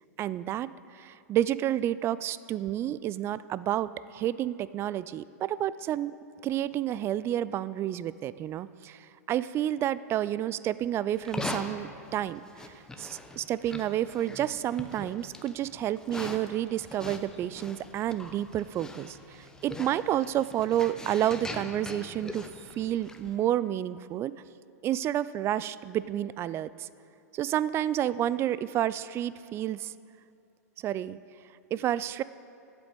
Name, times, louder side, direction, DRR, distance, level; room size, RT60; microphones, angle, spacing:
voice 1, 0.2-6.1 6.4-24.4 24.8-26.9 27.3-29.9 30.8-31.2 31.7-32.2, right 12 dB, 30° right, 17 dB, 0.3 m, -30 dB
Livestock farm animals working animals, 11.2-23.4, left 2 dB, 5° left, 0.8 m, -42 dB
8.4 x 7.9 x 8.4 m, 2.6 s
hypercardioid pair, 105°, 9 cm